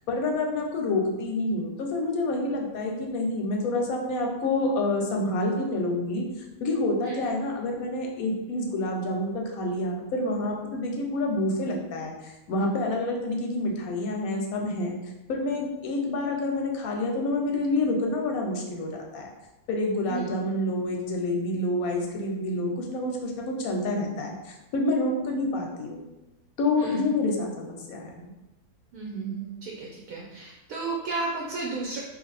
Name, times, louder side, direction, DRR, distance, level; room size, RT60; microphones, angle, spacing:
voice 1, 0.1-6.2 6.6-15.0 15.3-19.3 19.7-26.0 26.6-28.3, left 2 dB, 65° left, 1 dB, 0.9 m, -28 dB
voice 2, 28.9-32.0, right 3 dB, 70° right, -2 dB, 0.9 m, -33 dB
2.8 x 2.5 x 4.0 m, 1.0 s
omnidirectional pair, 1.8 m